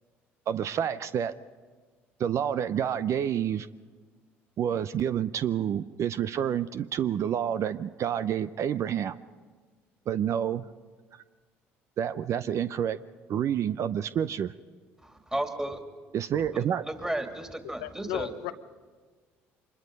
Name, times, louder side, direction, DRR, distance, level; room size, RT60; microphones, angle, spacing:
voice 1, 0.5-1.3 2.2-3.7 4.6-9.2 10.1-10.6 12.0-13.0 13.3-14.5 16.1-16.8, right 9 dB, 55° right, 13 dB, 0.5 m, -28 dB
voice 2, 15.0-15.8 16.5-18.3, right 1 dB, 10° right, 4 dB, 2.7 m, -34 dB
voice 3, 17.8-18.5, left 15 dB, 80° left, 10 dB, 0.7 m, -34 dB
24.5 x 21.0 x 5.3 m, 1.4 s
hypercardioid pair, 65°, 6 cm